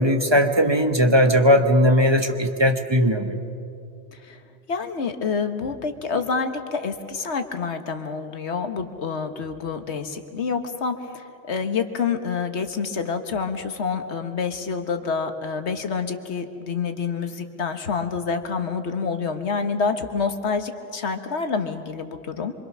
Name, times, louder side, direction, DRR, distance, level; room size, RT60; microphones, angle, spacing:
voice 1, 0.0-3.4, equal, 25° right, 6 dB, 1.1 m, -18 dB
voice 2, 4.7-22.5, left 5 dB, 90° left, 7 dB, 1.6 m, -27 dB
25.5 x 24.5 x 6.1 m, 2.5 s
omnidirectional pair, 1.1 m